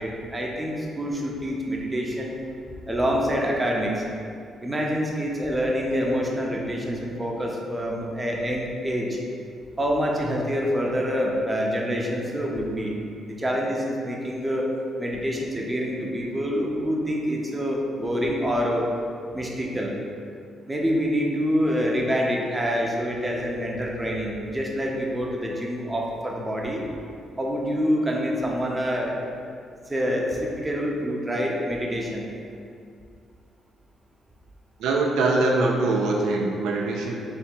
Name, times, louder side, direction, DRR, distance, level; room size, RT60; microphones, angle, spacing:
voice 1, 0.0-2.3 2.9-4.0 4.6-9.2 9.8-12.9 13.2-14.7 15.0-18.9 19.3-19.9 20.7-26.8 27.4-29.2 29.9-32.3, equal, 15° right, -2 dB, 0.7 m, -26 dB
voice 2, 34.8-37.1, right 2 dB, 90° right, -1 dB, 0.4 m, -23 dB
3.5 x 2.7 x 4.4 m, 2.4 s
cardioid pair, 90°, 0 cm